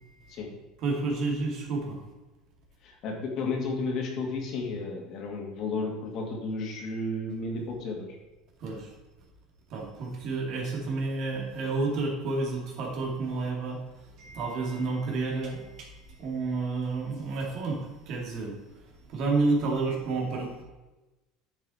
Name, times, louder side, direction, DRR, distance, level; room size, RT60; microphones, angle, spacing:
voice 1, 0.8-2.0 8.6-8.9 9.7-13.8 14.2-15.9 16.2-18.6 19.1-20.6, right 3 dB, 55° right, 0 dB, 2.3 m, -30 dB
voice 2, 2.8-8.1, left 3 dB, 55° left, 1 dB, 2.1 m, -32 dB
9.6 x 5.6 x 4.2 m, 1.1 s
supercardioid pair, 115°, 0 cm